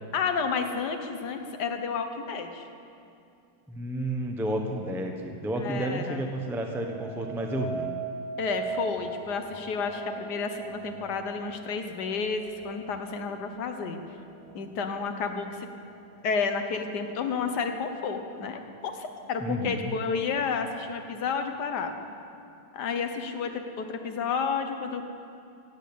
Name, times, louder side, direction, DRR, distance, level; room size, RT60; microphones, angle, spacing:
voice 1, 0.1-2.6 5.6-6.2 8.4-14.0 14.5-15.7 16.2-22.0 22.7-25.1, left 5 dB, 60° left, 6 dB, 1.6 m, -31 dB
voice 2, 3.7-7.9 19.4-19.9, right 1 dB, 5° right, 3 dB, 0.3 m, -31 dB
sound 1, 6.6-15.8 16.3-16.8, right 4 dB, 85° right, 3.1 m, -40 dB
15.5 x 8.4 x 8.6 m, 2.6 s
omnidirectional pair, 2.1 m